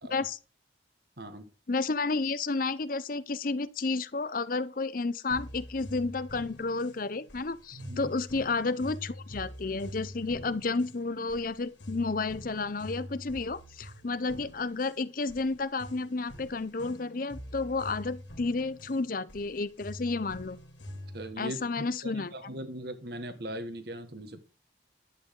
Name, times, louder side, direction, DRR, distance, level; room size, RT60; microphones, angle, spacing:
voice 1, 1.2-1.5 7.7-8.1 21.1-24.4, right 1 dB, 55° right, 1.6 m, -40 dB
voice 2, 1.7-20.6 21.4-22.3, left 3 dB, 45° left, 0.6 m, -31 dB
sound 1, 5.3-21.3, equal, 70° left, 2.9 m, -46 dB
11.0 x 8.9 x 3.8 m
head